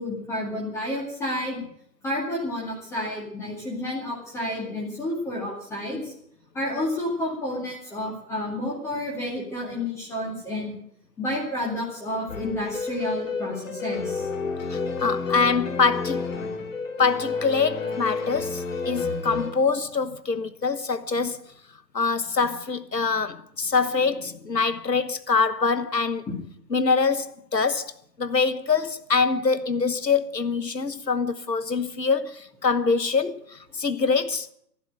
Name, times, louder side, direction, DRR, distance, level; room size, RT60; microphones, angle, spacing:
voice 1, 0.0-1.6 2.0-6.1 6.5-10.7 11.2-14.3, left 1 dB, 5° left, 2.3 m, -30 dB
sound 1, 12.3-19.5, left 4 dB, 50° left, 2.9 m, -30 dB
voice 2, 14.7-16.3 17.0-21.4 21.9-26.2 26.7-27.9 28.2-34.5, left 4 dB, 80° left, 1.3 m, -24 dB
12.5 x 11.5 x 8.9 m
figure-of-eight pair, 140°, 50 cm